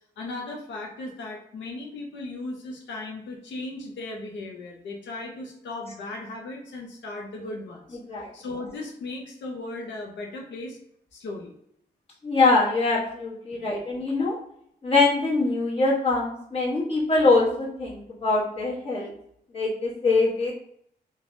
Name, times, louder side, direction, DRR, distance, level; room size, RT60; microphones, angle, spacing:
voice 1, 0.2-8.0 8.3-10.8 11.1-11.5 13.5-13.7, left 2 dB, 85° left, -1 dB, 0.5 m, -37 dB
voice 2, 12.2-14.4 14.8-19.1 19.5-20.5, left 3 dB, 30° left, -5 dB, 1.1 m, -23 dB
3.3 x 2.1 x 2.5 m, 0.70 s
cardioid pair, 75°, 18 cm